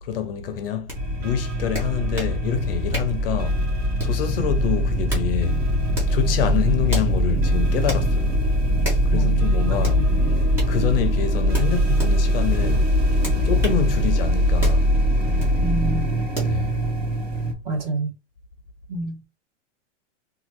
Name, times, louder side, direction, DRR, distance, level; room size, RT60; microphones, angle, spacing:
voice 1, 0.0-3.6 4.0-5.6 6.1-8.4 9.1-10.0 10.3-12.9 13.4-14.9 16.4-16.7, left 8 dB, 50° left, 0.5 m, -26 dB
sound 1, 0.9-1.0 1.7-2.4 2.9-3.2 4.0-4.3 4.9-5.3 5.9-6.2 6.9-7.1 7.9-8.1 8.8-9.1 9.8-10.0 10.5-10.7 11.5-12.1 13.2-13.8 14.6-14.8 15.4-15.6 16.3-16.6, equal, 5° right, 0.4 m, -31 dB
sound 2, 0.9-17.5, equal, 60° right, 1.3 m, -22 dB
voice 2, 9.1-9.5 9.9-10.1 15.6-16.1 17.6-18.1 18.9-19.3, right 2 dB, 35° right, 1.1 m, -27 dB
3.0 x 2.3 x 2.9 m
supercardioid pair, 170°, 36 cm